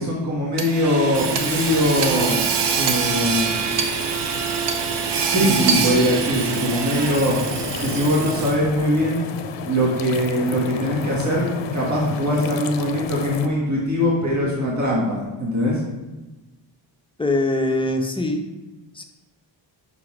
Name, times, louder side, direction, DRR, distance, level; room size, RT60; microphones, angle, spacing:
voice 1, 0.0-2.4 2.7-3.5 5.3-7.4 7.8-9.3 9.7-15.8, equal, 35° right, -4 dB, 1.6 m, -22 dB
Hammer / Sawing, 0.6-8.8, right 5 dB, 60° right, 0.8 m, -24 dB
voice 2, 5.4-5.9 17.2-18.4 18.9-19.0, left 1 dB, 10° left, 3 dB, 0.6 m, -23 dB
sound 1, 7.0-13.5, left 7 dB, 65° left, 0.6 m, -32 dB
5.9 x 4.0 x 4.7 m, 1.1 s
cardioid pair, 110°, 47 cm